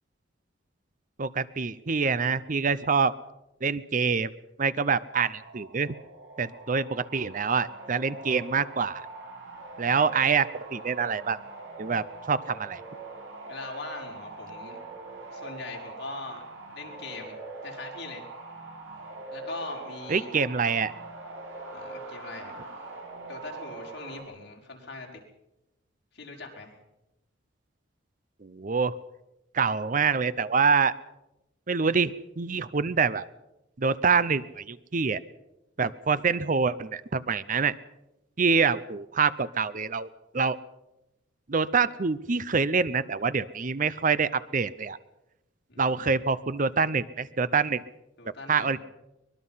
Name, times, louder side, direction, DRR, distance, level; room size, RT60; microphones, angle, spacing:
voice 1, 1.2-3.1 3.6-4.3 4.6-6.0 6.4-9.0 9.8-11.4 11.8-12.8 20.1-20.9 28.4-28.9 29.5-30.9 31.7-33.3 33.8-35.2 35.8-37.7 38.4-40.1 40.3-40.6 41.5-45.0 45.8-47.8 48.5-48.8, right 5 dB, 45° right, 16 dB, 0.7 m, -26 dB
sound 1, 5.0-24.2, right 3 dB, 90° right, 5.8 m, -43 dB
voice 2, 13.4-14.8 15.3-16.4 16.7-17.4 17.6-18.2 19.3-20.3 21.7-22.6 23.3-25.1 26.1-26.7 45.7-46.2 48.2-48.8, left 3 dB, 60° left, 0 dB, 5.3 m, -41 dB
24.0 x 21.5 x 5.7 m, 0.93 s
head